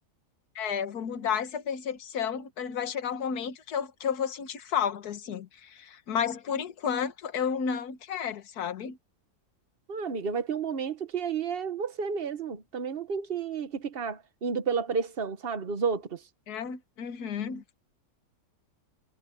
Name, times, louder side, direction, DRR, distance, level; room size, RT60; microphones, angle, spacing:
voice 1, 0.5-9.0 16.5-17.6, left 7 dB, 65° left, 1.8 m, -32 dB
voice 2, 9.9-16.2, right 6 dB, 35° right, 1.3 m, -31 dB
omnidirectional pair, 1.8 m